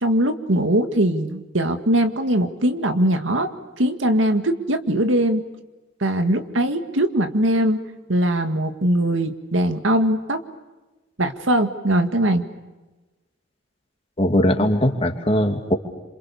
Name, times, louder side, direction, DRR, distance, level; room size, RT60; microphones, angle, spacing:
voice 1, 0.0-3.5 3.8-5.4 6.0-7.8 8.1-10.4 11.2-12.4, right 1 dB, 85° right, 7 dB, 2.0 m, -21 dB
voice 2, 14.2-15.7, left 1 dB, 30° left, 4 dB, 2.6 m, -20 dB
27.5 x 27.5 x 7.1 m, 1.1 s
head